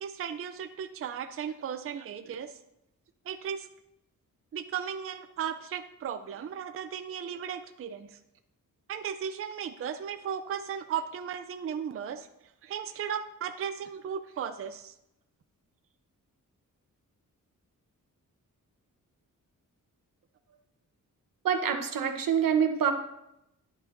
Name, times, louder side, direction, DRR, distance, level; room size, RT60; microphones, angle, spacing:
voice 1, 0.0-2.6 3.3-3.7 4.5-8.2 8.9-12.3 12.6-14.9, right 8 dB, 45° right, 9 dB, 0.4 m, -36 dB
voice 2, 21.4-22.9, right 7 dB, 85° right, 5 dB, 1.0 m, -26 dB
10.5 x 9.2 x 2.6 m, 0.85 s
wide cardioid pair, 155°, 32 cm